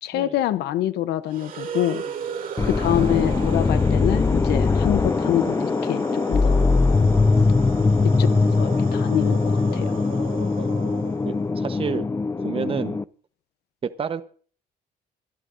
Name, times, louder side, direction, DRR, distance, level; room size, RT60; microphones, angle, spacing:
voice 1, 0.0-2.0 2.6-6.6 8.2-10.0, left 12 dB, 75° left, 0.9 m, -26 dB
sound 1, 1.3-11.5, right 7 dB, 55° right, 2.9 m, -37 dB
sound 2, 2.6-13.0, left 3 dB, 15° left, 0.5 m, -21 dB
voice 2, 11.2-12.1 12.4-13.0 13.8-14.2, right 6 dB, 35° right, 1.0 m, -30 dB
25.5 x 11.0 x 2.6 m
cardioid pair, 110°, 17 cm